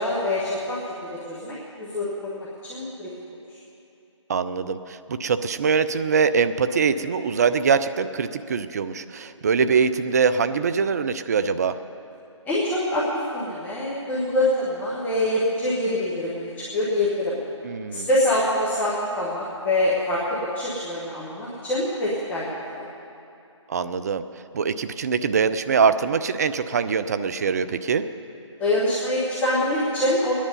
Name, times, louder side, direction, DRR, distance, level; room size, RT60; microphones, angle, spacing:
voice 1, 0.0-3.1 3.5-3.6 12.4-13.1 13.3-17.4 17.9-22.9 28.6-30.3, left 1 dB, 10° left, -8 dB, 1.5 m, -25 dB
voice 2, 4.3-11.8 17.6-18.1 23.7-24.2 24.5-28.0, right 5 dB, 30° right, 12 dB, 0.4 m, -23 dB
19.5 x 10.0 x 5.4 m, 2.7 s
figure-of-eight pair, 145°, 16 cm